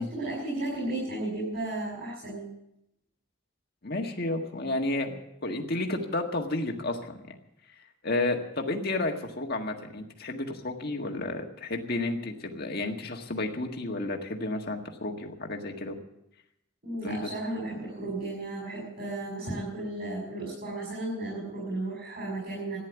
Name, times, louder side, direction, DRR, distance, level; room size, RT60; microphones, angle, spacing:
voice 1, 0.0-2.5 16.8-22.8, right 2 dB, 40° right, -6 dB, 7.3 m, -34 dB
voice 2, 3.8-7.2 8.0-16.0 17.0-17.3, left 2 dB, 45° left, 3 dB, 1.7 m, -31 dB
14.5 x 10.5 x 8.2 m, 0.84 s
head